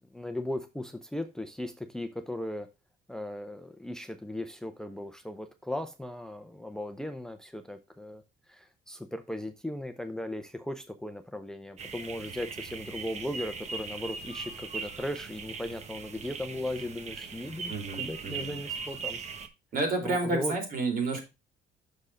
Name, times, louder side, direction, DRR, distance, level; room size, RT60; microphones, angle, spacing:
voice 1, 0.0-2.7 3.1-17.7 18.0-19.2 20.0-20.5, left 1 dB, 5° left, 0.7 m, -37 dB
sound 1, 11.8-19.5, right 5 dB, 40° right, 1.2 m, -40 dB
voice 2, 17.7-18.6 19.7-21.2, right 3 dB, 60° right, 3.7 m, -30 dB
6.5 x 5.3 x 4.9 m
cardioid pair, 110°, 17 cm